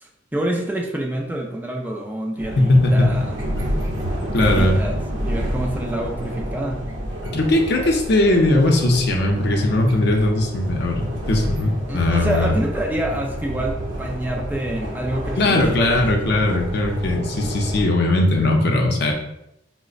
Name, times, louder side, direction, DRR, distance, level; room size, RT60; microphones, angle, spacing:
voice 1, 0.0-3.2 4.3-4.9 5.2-6.8 11.9-16.3, right 1 dB, 10° right, -1 dB, 0.3 m, -27 dB
sound 1, 2.4-17.9, equal, 85° right, 0.6 m, -29 dB
voice 2, 2.6-3.1 4.3-4.8 7.3-12.5 15.4-19.1, left 2 dB, 60° left, 1 dB, 0.5 m, -19 dB
5.0 x 2.0 x 2.4 m, 0.82 s
head